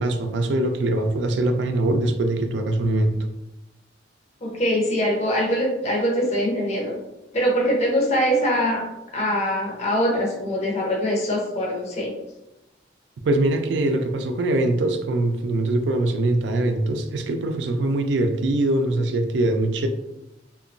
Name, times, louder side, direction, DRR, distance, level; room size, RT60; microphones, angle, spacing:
voice 1, 0.0-3.2 13.2-19.9, right 2 dB, 75° right, 6 dB, 0.3 m, -22 dB
voice 2, 4.4-6.9 7.3-12.1, equal, 35° left, -2 dB, 0.6 m, -23 dB
2.8 x 2.2 x 2.5 m, 0.95 s
head